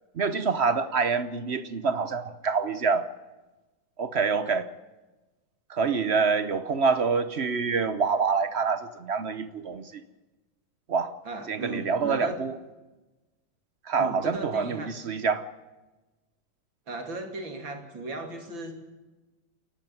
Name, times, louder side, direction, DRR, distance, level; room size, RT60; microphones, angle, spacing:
voice 1, 0.2-3.1 4.0-4.7 5.7-10.0 10.9-11.1 11.5-12.5 13.9-15.5, right 5 dB, 55° right, 0.7 m, -26 dB
voice 2, 11.3-12.4 14.0-14.9 16.9-18.7, right 2 dB, 75° right, 3.5 m, -36 dB
28.5 x 12.0 x 9.2 m
omnidirectional pair, 2.1 m